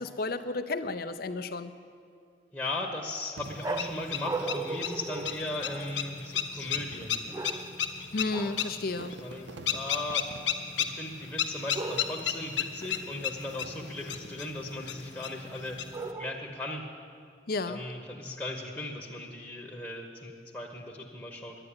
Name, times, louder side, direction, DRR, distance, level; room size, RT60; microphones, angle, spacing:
voice 1, 0.0-1.7 8.1-9.2 17.5-17.8, left 3 dB, 55° left, 10 dB, 0.6 m, -32 dB
voice 2, 2.5-7.2 9.2-10.2 10.8-15.8 16.2-16.8 17.7-21.6, left 2 dB, 10° left, -2 dB, 1.0 m, -37 dB
sound 1, 3.4-16.1, left 8 dB, 80° left, 0.9 m, -35 dB
Fireworks, 3.4-5.0 5.8-5.9 6.6-11.9 12.9-14.7 15.3-15.8, right 3 dB, 80° right, 0.6 m, -51 dB
sound 2, 3.6-6.1 7.3-7.9 8.3-8.8 11.7-12.4 15.9-16.7, right 3 dB, 15° right, 0.3 m, -37 dB
10.5 x 10.0 x 9.7 m, 2.3 s
head